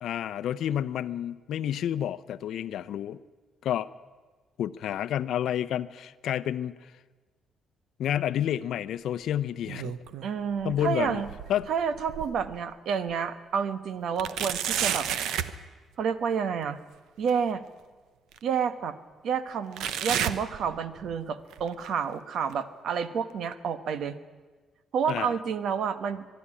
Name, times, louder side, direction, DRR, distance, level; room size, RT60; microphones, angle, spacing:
voice 1, 0.0-3.2 3.6-3.9 4.6-6.9 8.0-10.0 10.6-11.2 11.5-11.7 25.1-25.3, left 10 dB, 75° left, 15 dB, 0.6 m, -30 dB
sound 1, 9.4-10.3 10.7-12.6 13.1-13.2 14.2-15.6 17.3-17.4 18.3-18.4 19.8-21.1 21.5-21.9 22.5-22.6 23.5-23.6, right 9 dB, 85° right, 0.9 m, -32 dB
voice 2, 10.2-11.3 11.7-15.1 16.0-16.8 17.2-17.6 18.4-19.0 19.2-24.2 24.9-26.3, right 7 dB, 70° right, 12 dB, 1.1 m, -29 dB
23.0 x 12.0 x 9.9 m, 1.4 s
cardioid pair, 90°, 0 cm